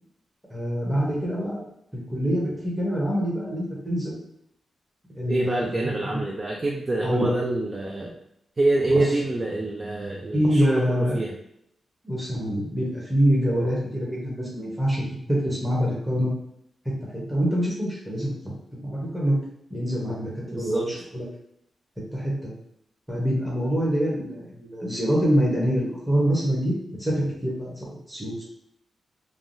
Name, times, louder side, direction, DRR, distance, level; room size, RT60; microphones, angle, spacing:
voice 1, 0.5-1.6 1.9-4.2 5.1-5.7 6.1-6.2 7.0-7.3 8.9-9.0 10.3-11.2 12.0-15.0 15.3-16.3 16.8-18.5 18.8-19.4 19.7-21.2 22.0-22.5 23.1-28.4, equal, 5° right, -5 dB, 0.8 m, -25 dB
voice 2, 5.3-8.2 8.6-11.4 20.5-20.9, right 2 dB, 25° right, -1 dB, 0.3 m, -26 dB
3.4 x 2.2 x 2.6 m, 0.76 s
wide cardioid pair, 145°, 0 cm